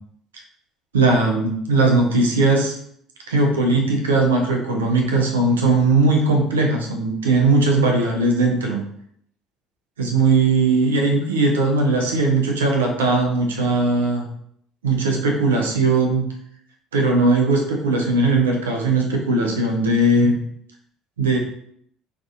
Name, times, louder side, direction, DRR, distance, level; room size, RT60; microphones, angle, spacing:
voice 1, 0.9-2.7 3.3-8.8 10.0-14.3 14.8-16.3 16.9-20.4 21.2-21.4, right 3 dB, 80° right, 1 dB, 0.4 m, -19 dB
2.5 x 2.3 x 2.4 m, 0.68 s
figure-of-eight pair, 55°, 0 cm